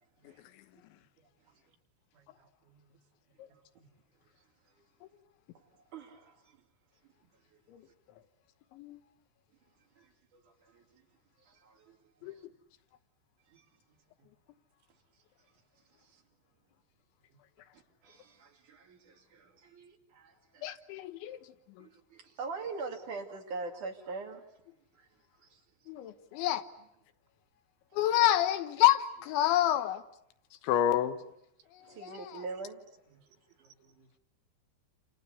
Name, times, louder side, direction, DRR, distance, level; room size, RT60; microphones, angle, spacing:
voice 1, 2.1-2.9 3.8-3.9 33.6-34.2, right 5 dB, 85° right, 4.8 m, -66 dB
voice 2, 5.6-6.6 10.0-11.0 11.4-12.0 12.2-12.4 13.5-13.7 16.0-16.2 17.7-20.7 21.8-24.5 24.9-25.1 25.4-25.6 27.9-28.0 31.9-32.9 33.6-33.7, right 3 dB, 50° right, 3.5 m, -44 dB
voice 3, 20.6-21.4 25.9-26.6 27.9-30.0 30.6-31.2, left 13 dB, 85° left, 3.5 m, -27 dB
29.0 x 28.5 x 6.9 m
omnidirectional pair, 5.2 m